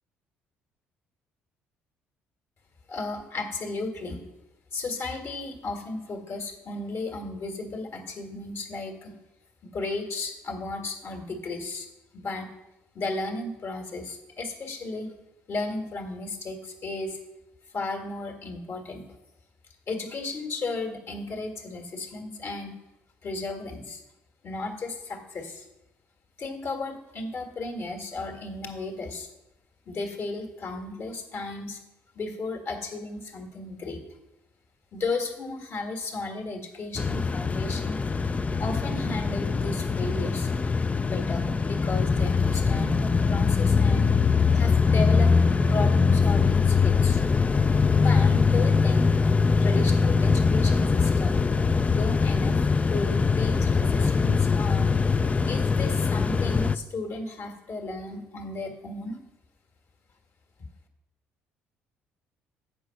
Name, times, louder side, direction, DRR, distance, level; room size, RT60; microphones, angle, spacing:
voice 1, 2.9-4.2 4.7-9.1 9.6-11.9 12.1-12.5 12.9-15.1 15.5-17.2 17.7-19.0 19.9-22.7 23.2-24.0 24.4-25.7 26.4-29.3 29.9-31.8 32.1-34.0 34.9-38.0 38.6-40.5 41.0-45.3 45.7-47.2 47.9-49.3 49.6-51.4 51.9-54.9 55.5-59.2, left 3 dB, 50° left, 3 dB, 1.7 m, -34 dB
sound 1, 37.0-56.8, left 5 dB, 25° left, 0.4 m, -22 dB
8.3 x 5.3 x 5.8 m, 0.96 s
hypercardioid pair, 60°, 5 cm